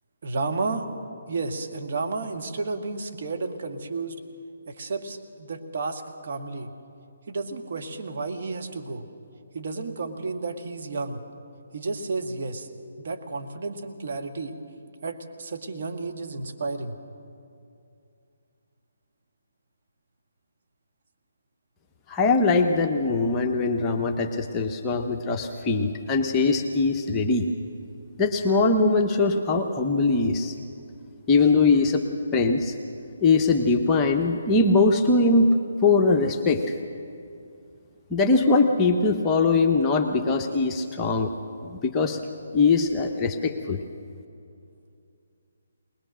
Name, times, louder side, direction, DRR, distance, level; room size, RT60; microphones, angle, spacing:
voice 1, 0.2-0.9 1.3-4.2 4.7-6.7 7.3-9.1 9.5-11.2 11.7-12.7 13.0-14.6 15.0-17.0, right 3 dB, 50° right, 3 dB, 1.7 m, -32 dB
voice 2, 22.1-27.5 28.2-30.5 31.3-32.0 32.3-32.7 33.2-35.5 35.8-36.7 38.1-41.3 41.6-42.2 42.5-43.8, left 3 dB, 15° left, 2 dB, 1.0 m, -21 dB
20.5 x 20.5 x 6.4 m, 2.6 s
figure-of-eight pair, 140°, 0 cm